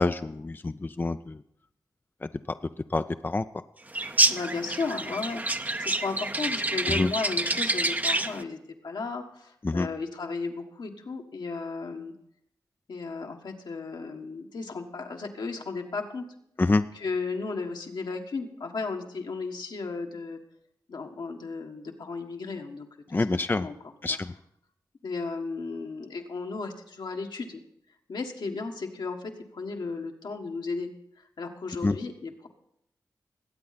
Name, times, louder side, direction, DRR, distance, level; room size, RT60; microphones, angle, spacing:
voice 1, 0.0-1.4 2.2-2.3 2.9-3.4 6.9-7.1 9.6-9.9 16.6-16.8 23.1-23.7 24.0-24.3 31.8-32.0, left 3 dB, 25° left, 10 dB, 0.5 m, -26 dB
sound 1, 3.9-8.4, right 2 dB, 20° right, 0.7 m, -27 dB
voice 2, 4.3-12.1 12.9-16.2 16.9-20.4 20.9-22.9 23.1-23.7 24.1-24.2 25.0-27.6 28.1-30.9 31.4-32.5, left 4 dB, 75° left, 2 dB, 1.5 m, -35 dB
21.0 x 8.5 x 4.2 m, 0.75 s
cardioid pair, 45°, 8 cm